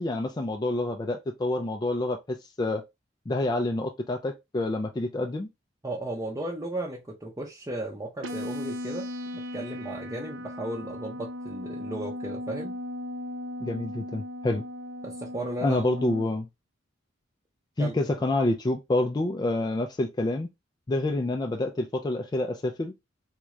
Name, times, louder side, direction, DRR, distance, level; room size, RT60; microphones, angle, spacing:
voice 1, 0.0-2.8 3.3-5.5 13.6-14.6 15.6-16.5 17.8-20.5 20.9-22.9, left 2 dB, 20° left, 0.3 m, -28 dB
voice 2, 5.8-9.0 9.3-12.8 15.0-15.9 17.8-17.9, right 1 dB, 15° right, 0.7 m, -35 dB
sound 1, 8.2-16.2, left 1 dB, 70° right, 0.5 m, -37 dB
3.6 x 2.3 x 3.1 m
head